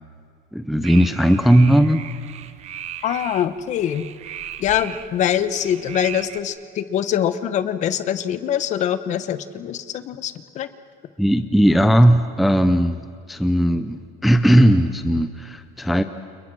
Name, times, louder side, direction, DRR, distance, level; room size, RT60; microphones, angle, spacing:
voice 1, 0.5-2.0 11.2-13.0 13.3-16.0, equal, ahead, 9 dB, 0.6 m, -17 dB
sound 1, 0.8-6.4, right 10 dB, 30° right, 1.2 m, -37 dB
voice 2, 3.0-4.0 4.6-10.7, left 10 dB, 35° left, 13 dB, 1.1 m, -24 dB
29.5 x 29.0 x 6.2 m, 2.4 s
cardioid pair, 170°, 21 cm